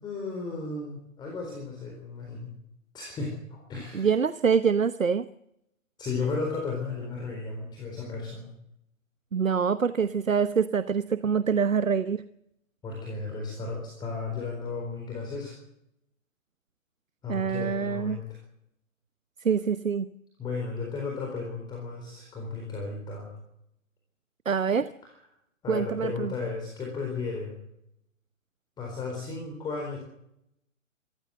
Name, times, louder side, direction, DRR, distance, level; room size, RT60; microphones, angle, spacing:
voice 1, 0.0-2.6 2.9-4.1 6.0-8.5 12.8-15.6 17.2-18.4 20.4-23.4 25.6-27.6 28.8-30.0, left 4 dB, 10° left, 0 dB, 4.2 m, -34 dB
voice 2, 3.9-5.3 9.3-12.2 17.3-18.2 19.4-20.1 24.5-24.9 25.7-26.3, right 6 dB, 75° right, 14 dB, 1.0 m, -25 dB
25.0 x 15.0 x 7.9 m, 0.79 s
figure-of-eight pair, 135°, 39 cm